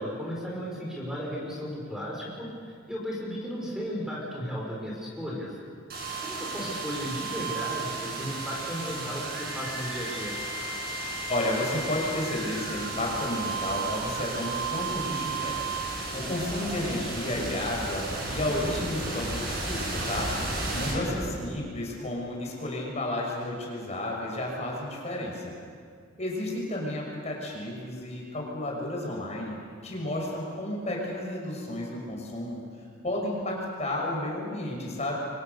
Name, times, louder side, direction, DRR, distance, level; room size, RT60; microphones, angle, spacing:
voice 1, 0.0-2.5 2.9-5.5 6.2-10.4 21.0-21.6, equal, 5° right, -4 dB, 5.0 m, -35 dB
sound 1, 5.9-21.7, right 3 dB, 50° right, 6.9 m, -33 dB
voice 2, 11.3-15.6 16.1-20.3 20.7-25.5 26.2-29.6 29.8-32.6 33.0-35.2, left 1 dB, 35° left, -2 dB, 6.1 m, -32 dB
29.5 x 24.5 x 6.8 m, 2.1 s
head